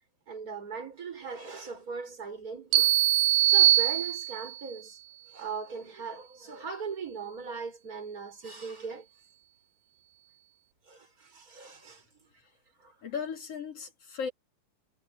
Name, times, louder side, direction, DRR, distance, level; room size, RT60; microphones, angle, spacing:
voice 1, 0.3-2.9 3.5-5.0 5.3-9.1 10.9-12.0 12.8-12.9, right 5 dB, 20° right, 6.0 m, -39 dB
sound 1, 2.7-4.6, right 13 dB, 80° right, 2.6 m, -22 dB
voice 2, 13.0-14.3, left 6 dB, 40° left, 3.8 m, -36 dB
omnidirectional pair, 4.3 m